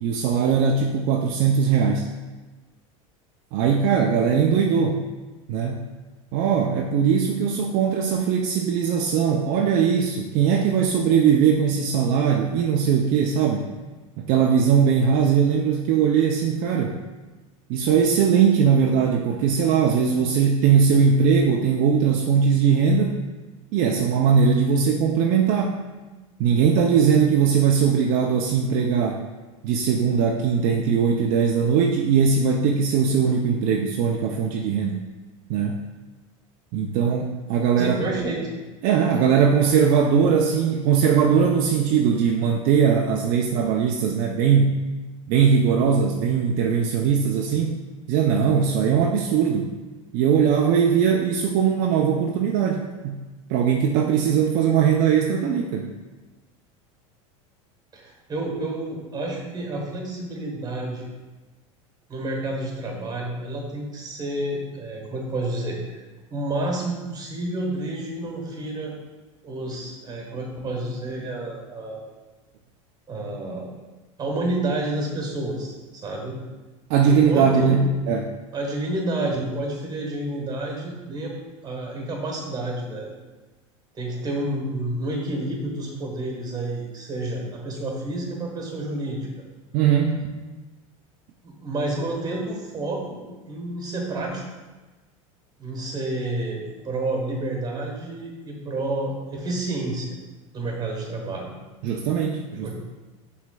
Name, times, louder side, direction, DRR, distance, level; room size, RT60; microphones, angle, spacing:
voice 1, 0.0-2.1 3.5-5.0 5.5-5.8 6.3-13.7 14.2-17.0 17.7-23.2 23.7-25.8 26.4-29.2 29.6-35.1 35.5-35.8 36.7-38.0 38.8-44.8 45.3-47.8 48.1-49.7 50.1-53.2 53.5-55.9 76.9-78.3 89.7-90.4 101.8-102.7, right 6 dB, 55° right, 1 dB, 0.4 m, -20 dB
voice 2, 37.8-38.6 57.9-61.1 62.1-66.0 66.3-68.9 69.4-72.0 73.1-73.8 74.2-75.7 76.0-76.4 77.1-77.9 78.5-81.3 81.6-83.1 83.9-89.3 91.4-94.4 95.6-100.1 100.5-101.5 102.6-102.7, right 2 dB, 25° right, 0 dB, 1.2 m, -29 dB
5.9 x 3.1 x 2.2 m, 1.2 s
supercardioid pair, 105°, 17 cm